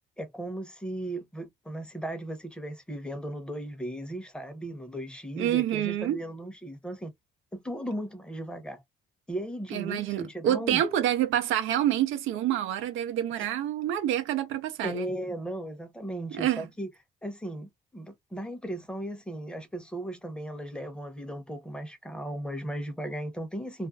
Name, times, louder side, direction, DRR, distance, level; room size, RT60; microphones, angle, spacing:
voice 1, 0.2-7.1 7.5-8.8 9.3-10.8 13.4-13.5 14.8-16.9 17.2-23.9, right 1 dB, 5° left, 0.8 m, -36 dB
voice 2, 5.4-6.2 9.7-15.1 16.3-16.6, right 11 dB, 85° right, 0.6 m, -27 dB
2.5 x 2.2 x 2.3 m
cardioid pair, 90°, 20 cm